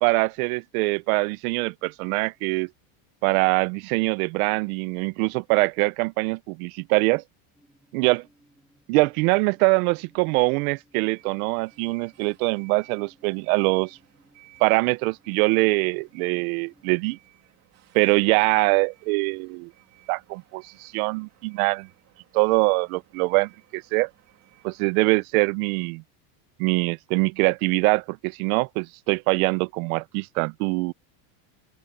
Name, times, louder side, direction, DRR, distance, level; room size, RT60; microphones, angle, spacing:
voice 1, 0.0-2.7 3.2-7.2 7.9-8.2 8.9-14.0 14.6-17.2 17.9-19.7 20.1-21.9 22.3-24.1 24.6-26.0 26.6-30.9, right 27 dB, 65° right, 0.6 m, -23 dB
sound 1, 7.5-17.2, right 1 dB, ahead, 2.8 m, -62 dB
sound 2, 11.1-25.0, right 18 dB, 35° right, 2.4 m, -57 dB
open air
cardioid pair, 175°, 47 cm